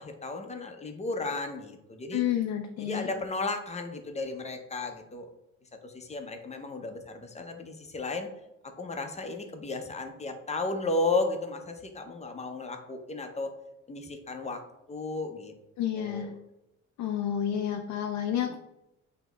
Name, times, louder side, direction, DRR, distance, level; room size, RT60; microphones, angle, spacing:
voice 1, 0.0-2.2 2.8-5.3 5.8-8.3 8.6-13.5 13.9-15.5 15.9-16.3 18.4-18.6, left 3 dB, 20° left, 5 dB, 0.6 m, -34 dB
voice 2, 2.1-3.1 15.8-16.3 17.0-18.6, left 10 dB, 70° left, 3 dB, 0.5 m, -30 dB
6.1 x 2.8 x 2.3 m, 0.88 s
cardioid pair, 90°, 30 cm